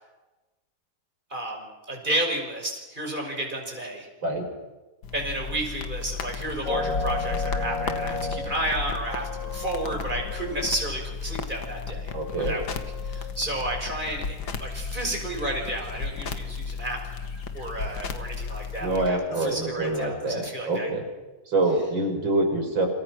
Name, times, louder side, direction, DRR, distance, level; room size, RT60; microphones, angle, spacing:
voice 1, 1.3-4.1 5.1-12.1 12.4-17.0 17.5-20.9, right 1 dB, 25° right, 2 dB, 6.0 m, -31 dB
sound 1, 5.0-19.1, left 5 dB, 85° left, 2.4 m, -34 dB
sound 2, 6.2-10.8 11.3-11.4 11.6-16.5 17.1-18.6 19.2-20.0, left 4 dB, 70° left, 3.4 m, -37 dB
voice 2, 12.1-12.6 18.8-21.0 21.5-22.9, right 2 dB, 85° right, 4 dB, 6.1 m, -25 dB
30.0 x 27.0 x 6.3 m, 1.1 s
omnidirectional pair, 2.1 m